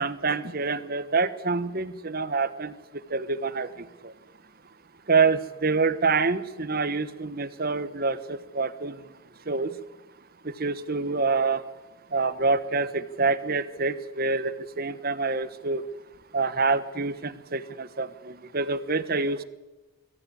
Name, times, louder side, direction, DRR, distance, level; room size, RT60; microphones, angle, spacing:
voice 1, 0.0-4.1 5.1-9.0 9.5-9.8 10.4-11.6 12.1-15.8 16.3-19.4, right 4 dB, 45° right, 13 dB, 1.1 m, -27 dB
22.0 x 14.5 x 9.8 m, 1.1 s
head